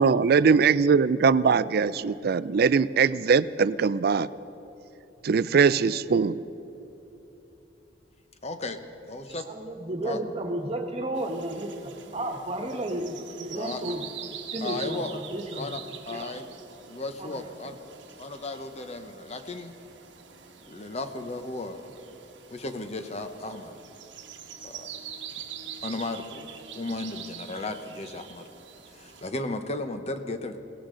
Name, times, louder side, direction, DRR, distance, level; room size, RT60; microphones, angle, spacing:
voice 1, 0.0-4.3 5.2-6.4, right 5 dB, 55° right, 16 dB, 0.4 m, -21 dB
voice 2, 8.4-8.8 9.1-9.5 10.0-10.2 13.5-14.0 14.6-15.2 15.6-16.5 16.9-17.8 18.1-19.8 20.7-21.8 22.5-23.7 24.6-25.0 25.8-26.5 26.7-28.5 28.9-30.6, left 2 dB, 35° left, 8 dB, 0.9 m, -35 dB
voice 3, 9.3-14.0 14.5-15.7 16.1-16.3 17.2-17.4, right 1 dB, 35° right, 3 dB, 1.4 m, -33 dB
sound 1, 11.1-29.3, right 8 dB, 90° right, 1.3 m, -44 dB
21.5 x 17.5 x 3.8 m, 2.9 s
head